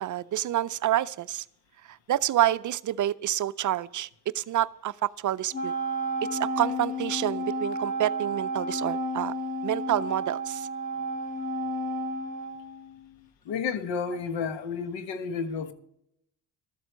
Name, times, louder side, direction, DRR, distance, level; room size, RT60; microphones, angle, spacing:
voice 1, 0.0-1.4 2.1-4.1 4.3-5.7 6.3-9.3 9.6-10.7, right 12 dB, 45° right, 0.5 m, -28 dB
Wind instrument woodwind instrument, 5.5-13.2, right 1 dB, 15° left, 2.0 m, -32 dB
voice 2, 13.4-15.7, left 6 dB, 80° left, 1.3 m, -31 dB
13.0 x 7.9 x 6.1 m
supercardioid pair, 80°, 44 cm